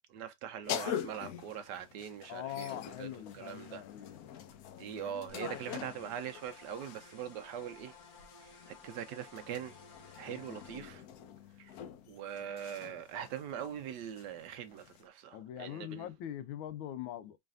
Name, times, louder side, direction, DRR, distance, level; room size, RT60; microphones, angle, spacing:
voice 1, 0.1-3.1 3.3-3.8 4.8-8.0 8.4-9.8 10.1-11.1 11.6-11.8 12.1-16.1, right 9 dB, 75° right, 1.0 m, -42 dB
sound 1, 0.6-7.2 8.2-15.0, left 9 dB, 70° left, 0.8 m, -45 dB
voice 2, 2.3-4.5 10.3-11.0 15.3-17.4, left 11 dB, 90° left, 1.4 m, -43 dB
sound 2, 5.3-10.8, left 5 dB, 55° left, 1.3 m, -55 dB
4.7 x 3.2 x 2.4 m
omnidirectional pair, 2.1 m